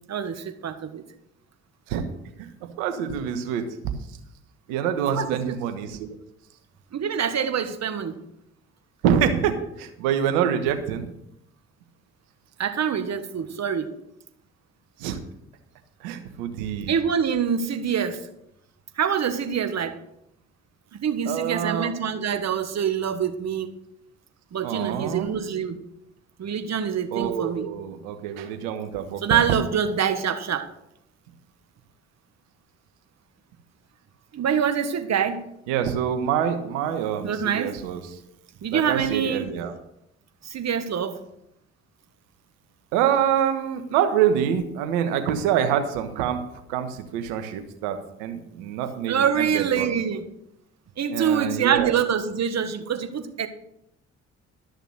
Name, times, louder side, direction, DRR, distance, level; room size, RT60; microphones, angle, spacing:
voice 1, 0.1-1.0 5.2-5.5 6.9-8.2 12.6-13.9 16.9-18.3 19.0-20.0 20.9-23.7 24.5-25.8 26.4-27.7 29.2-30.7 34.3-35.4 37.2-37.8 38.6-39.5 40.4-41.2 49.1-50.2 51.0-53.5, right 7 dB, 55° right, 8 dB, 1.5 m, -25 dB
voice 2, 2.8-3.6 4.7-6.1 9.0-11.1 15.0-15.2 16.0-16.9 21.3-21.9 24.6-25.3 27.1-29.4 35.7-38.0 38.7-39.7 42.9-46.4 46.7-49.9 51.1-51.9, right 9 dB, 80° right, 7 dB, 1.3 m, -26 dB
13.0 x 6.6 x 6.4 m, 0.77 s
hypercardioid pair, 45°, 33 cm